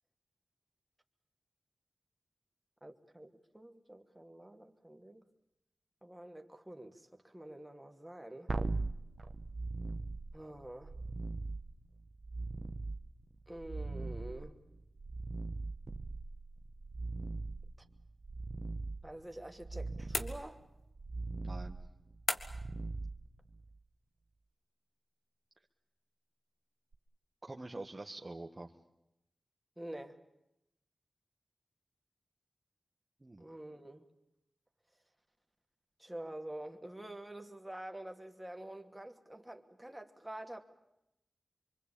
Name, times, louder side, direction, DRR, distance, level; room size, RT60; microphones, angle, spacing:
voice 1, 2.8-5.2 6.0-8.5 10.3-10.9 13.5-14.6 19.0-20.6 29.8-30.2 33.4-34.1 36.0-40.6, right 1 dB, 10° right, 4 dB, 2.7 m, -47 dB
sound 1, 8.5-23.8 26.9-27.0, right 3 dB, 55° right, 1.2 m, -41 dB
sound 2, 20.1-20.9 22.3-22.8, left 4 dB, 85° left, 1.5 m, -37 dB
voice 2, 21.4-21.8 27.4-28.7 33.2-33.4, right 2 dB, 35° right, 1 dB, 1.6 m, -45 dB
25.0 x 24.0 x 8.7 m, 0.85 s
cardioid pair, 55°, 0 cm